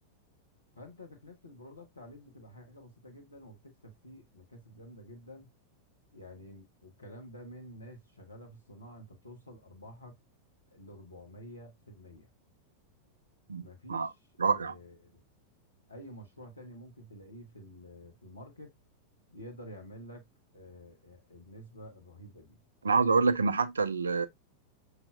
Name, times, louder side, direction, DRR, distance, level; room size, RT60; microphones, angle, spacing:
voice 1, 0.7-5.5 6.1-10.2 10.7-12.3 13.5-14.1 14.4-15.2 15.9-18.7 19.3-20.2 20.5-22.6, equal, 80° left, 1.2 m, -50 dB
voice 2, 14.4-14.7 22.8-24.3, right 4 dB, 75° right, 0.4 m, -26 dB
5.6 x 3.2 x 2.4 m
figure-of-eight pair, 90°, 0 cm